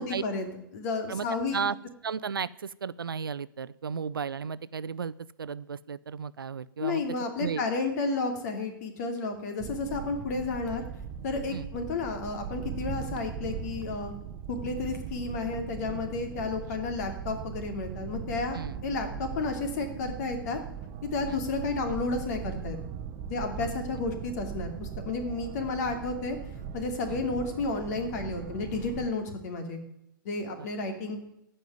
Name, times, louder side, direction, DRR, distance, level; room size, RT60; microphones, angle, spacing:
voice 1, 0.0-1.7 6.8-10.8 11.2-14.1 14.5-20.6 21.0-22.8 23.3-26.4 26.7-29.8 30.2-31.2, left 3 dB, 50° left, 6 dB, 2.8 m, -32 dB
voice 2, 1.1-1.8 2.0-7.0 7.4-7.6 11.5-11.7 18.5-18.8 21.3-21.4 23.6-23.7 27.1-27.2 30.6-30.7, right 6 dB, 80° right, 18 dB, 0.5 m, -34 dB
sound 1, 9.6-29.1, right 8 dB, 30° right, 0.9 m, -39 dB
15.0 x 5.5 x 9.2 m, 0.79 s
figure-of-eight pair, 120°, 12 cm